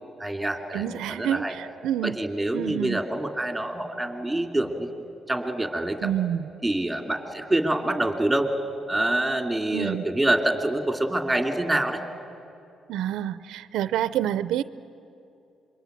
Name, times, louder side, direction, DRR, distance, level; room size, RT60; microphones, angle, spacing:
voice 1, 0.2-1.5 2.0-4.9 5.3-6.1 6.6-8.5 8.9-12.0, right 1 dB, 5° right, 5 dB, 2.8 m, -26 dB
voice 2, 0.7-2.2 2.5-3.0 6.0-6.4 9.7-10.0 12.9-14.6, right 11 dB, 90° right, 15 dB, 0.6 m, -28 dB
26.5 x 23.0 x 9.3 m, 2.7 s
cardioid pair, 100°, 0 cm